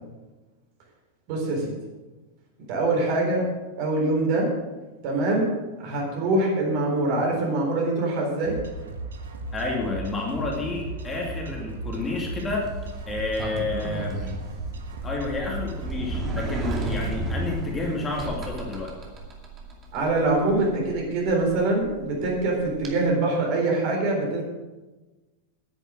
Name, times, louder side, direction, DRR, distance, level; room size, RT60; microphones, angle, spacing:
voice 1, 1.3-1.8 2.7-3.5 3.8-4.5 5.0-5.5 5.8-8.6 19.9-24.4, right 2 dB, 45° right, -1 dB, 4.0 m, -24 dB
sound 1, 8.4-15.9, right 2 dB, 65° right, 1.4 m, -36 dB
voice 2, 9.5-12.7 13.1-14.2 15.0-18.9, left 3 dB, 15° left, -1 dB, 2.6 m, -30 dB
Sliding door, 12.4-22.9, right 2 dB, 25° right, 2.4 m, -34 dB
10.0 x 9.8 x 6.3 m, 1.2 s
figure-of-eight pair, 90°, 0 cm